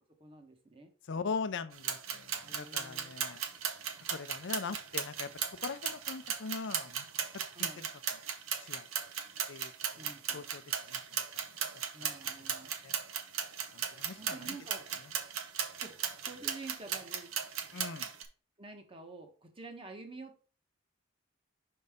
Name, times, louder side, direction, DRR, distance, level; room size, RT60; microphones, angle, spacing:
voice 1, 0.2-0.9 2.4-3.2 7.5-7.8 10.0-10.5 11.9-12.7 14.2-15.0 15.8-16.0 16.2-17.7 18.6-20.4, right 3 dB, 25° right, 1.1 m, -49 dB
voice 2, 1.1-3.4 4.1-7.0 7.6-8.2 8.6-8.9 9.5-11.4 12.8-13.0 13.7-14.6 17.7-18.1, left 4 dB, 60° left, 0.5 m, -41 dB
sound 1, 1.7-18.3, right 7 dB, 90° right, 0.9 m, -37 dB
5.4 x 5.3 x 3.5 m
head